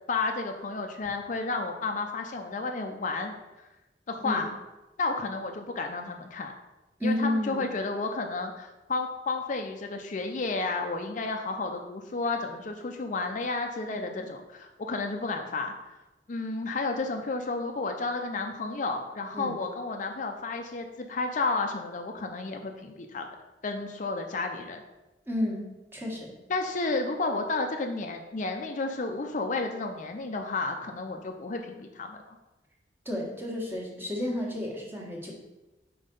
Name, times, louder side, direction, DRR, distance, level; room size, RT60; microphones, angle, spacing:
voice 1, 0.1-3.3 4.1-4.5 5.0-6.5 7.0-15.7 16.3-23.2 23.6-24.8 26.5-32.2, left 3 dB, 45° left, 4 dB, 0.5 m, -32 dB
voice 2, 7.0-7.7 13.9-14.2 19.3-19.5 25.3-26.3 33.0-35.3, left 1 dB, 15° right, -2 dB, 1.5 m, -31 dB
5.4 x 4.7 x 5.3 m, 1.1 s
head